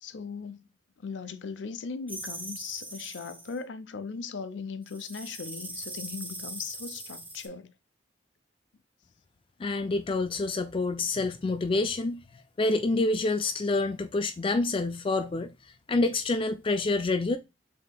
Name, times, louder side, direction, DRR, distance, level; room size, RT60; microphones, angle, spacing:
voice 1, 0.0-0.6 1.0-7.7, left 5 dB, 80° left, 0.5 m, -38 dB
sound 1, 2.1-3.6 4.9-7.5, right 1 dB, 10° right, 0.9 m, -40 dB
voice 2, 9.6-12.2 12.6-15.5 15.9-17.4, left 2 dB, 30° left, 0.3 m, -27 dB
6.4 x 2.8 x 2.2 m
head